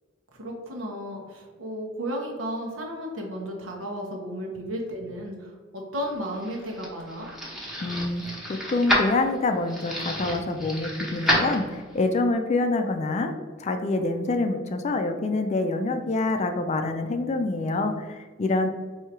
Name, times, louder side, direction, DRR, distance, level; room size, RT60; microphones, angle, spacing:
voice 1, 0.3-7.3, equal, 90° right, -1 dB, 1.0 m, -34 dB
sound 1, 6.1-12.1, equal, ahead, 0.9 m, -29 dB
voice 2, 7.8-18.7, left 2 dB, 35° left, 6 dB, 0.3 m, -26 dB
4.7 x 2.7 x 2.9 m, 1.5 s
head